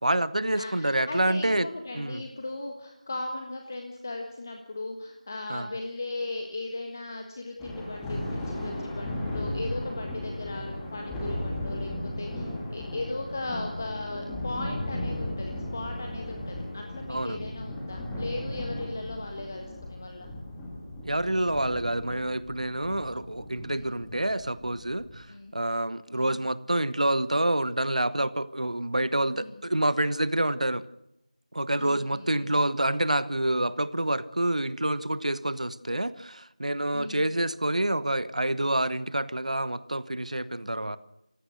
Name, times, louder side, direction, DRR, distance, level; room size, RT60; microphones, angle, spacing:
voice 1, 0.0-1.7 1.9-2.2 5.5-5.7 17.1-17.4 21.0-25.3 25.5-30.8 31.5-41.0, right 1 dB, 65° right, 16 dB, 1.2 m, -27 dB
voice 2, 0.6-20.3 23.7-24.0 25.3-25.5 26.1-26.4 29.4-29.5 31.8-32.5 36.9-37.2, left 2 dB, 25° left, 3 dB, 1.5 m, -37 dB
Thunder, 7.6-25.3, left 1 dB, 5° left, 1.7 m, -36 dB
Musical instrument, 8.9-17.5, left 2 dB, 50° left, 4.8 m, -44 dB
28.5 x 16.0 x 6.4 m, 0.85 s
figure-of-eight pair, 175°, 4 cm